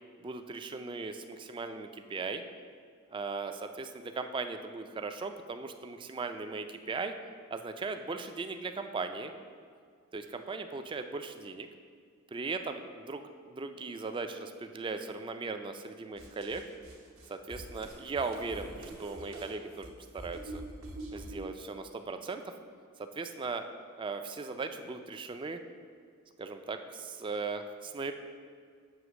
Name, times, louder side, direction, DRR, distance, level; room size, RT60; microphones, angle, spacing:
voice 1, 0.2-2.4 3.1-7.1 7.5-9.3 10.1-11.7 12.3-16.6 17.3-20.6 21.1-22.5 23.0-23.7 24.0-25.6 26.4-28.1, right 4 dB, 25° right, 7 dB, 0.3 m, -38 dB
sound 1, 16.2-21.5, right 1 dB, 70° right, 1.1 m, -45 dB
7.7 x 2.9 x 6.1 m, 2.1 s
head